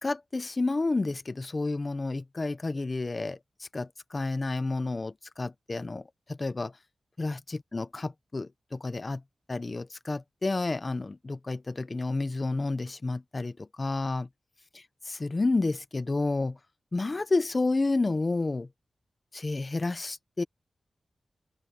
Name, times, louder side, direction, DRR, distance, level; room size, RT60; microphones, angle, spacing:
voice 1, 0.0-3.4 3.7-6.0 6.3-6.7 7.2-9.2 9.5-14.3 14.7-16.6 16.9-18.7 19.3-20.4, left 3 dB, 35° left, 0.8 m, -30 dB
wide cardioid pair, 85°, 0 cm